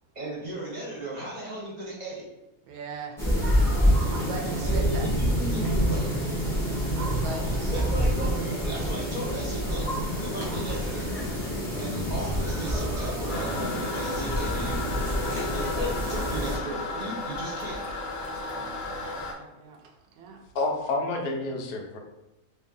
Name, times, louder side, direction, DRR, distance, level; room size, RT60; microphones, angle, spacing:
voice 1, 0.1-2.2 4.6-6.1 7.7-9.9 10.2-11.1 11.8-14.8 15.3-17.8, right 1 dB, 35° right, -5 dB, 1.0 m, -36 dB
voice 2, 2.6-3.3 4.1-5.1 6.9-8.1 15.1-15.4 18.4-20.5, right 4 dB, 85° right, 4 dB, 1.1 m, -41 dB
sound 1, 3.2-16.6, equal, ahead, 0.8 m, -27 dB
Toilet flush, 13.3-19.3, left 2 dB, 60° left, 0.7 m, -34 dB
voice 3, 20.5-22.0, left 2 dB, 90° left, 3 dB, 1.1 m, -29 dB
2.8 x 2.7 x 3.7 m, 0.97 s
omnidirectional pair, 1.5 m